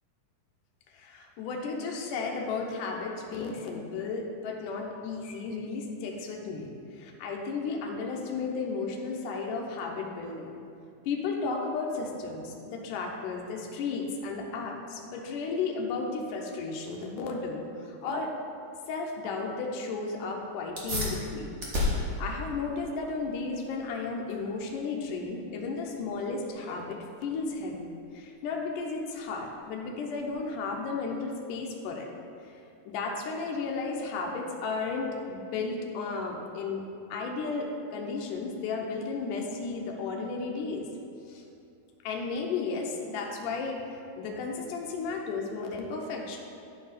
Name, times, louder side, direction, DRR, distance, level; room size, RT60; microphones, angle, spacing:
voice 1, 0.9-10.6 11.1-18.3 18.9-21.5 21.9-32.1 32.9-36.8 37.1-40.9 41.3-41.4 42.0-46.4, left 4 dB, 85° left, 0 dB, 2.4 m, -34 dB
sound 1, 20.6-30.7, left 2 dB, 50° right, 0.8 m, -37 dB
11.5 x 4.6 x 5.0 m, 2.6 s
omnidirectional pair, 3.7 m